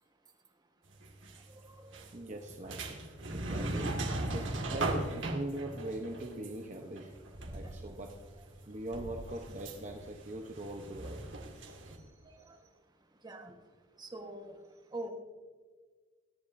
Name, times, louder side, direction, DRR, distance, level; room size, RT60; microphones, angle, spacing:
sound 1, 1.0-1.4 1.9-8.2 8.5-12.0, right 2 dB, 85° right, 1.9 m, -38 dB
voice 1, 2.1-7.1 7.5-8.1 8.7-11.2 11.6-12.6, right 1 dB, 40° right, 2 dB, 0.9 m, -42 dB
voice 2, 14.0-14.6 14.9-15.1, right 2 dB, 20° right, 3 dB, 1.3 m, -43 dB
22.0 x 10.5 x 2.6 m, 1.5 s
head